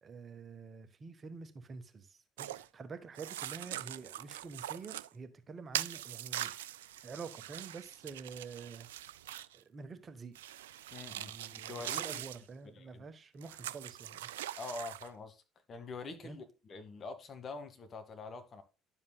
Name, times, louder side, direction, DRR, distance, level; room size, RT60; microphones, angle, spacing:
voice 1, 0.0-6.5 7.0-8.9 9.5-10.3 11.1-14.3 16.2-16.4, right 4 dB, 35° right, 1.1 m, -48 dB
sound 1, 2.4-2.7 3.1-5.1 5.7-9.6 10.3-12.4 13.4-15.1, right 13 dB, 75° right, 0.3 m, -42 dB
voice 2, 10.9-11.3 11.6-12.2 12.8-13.0 14.6-15.4 15.7-18.6, left 3 dB, 40° left, 1.8 m, -45 dB
11.0 x 7.2 x 2.2 m
figure-of-eight pair, 55°, 0 cm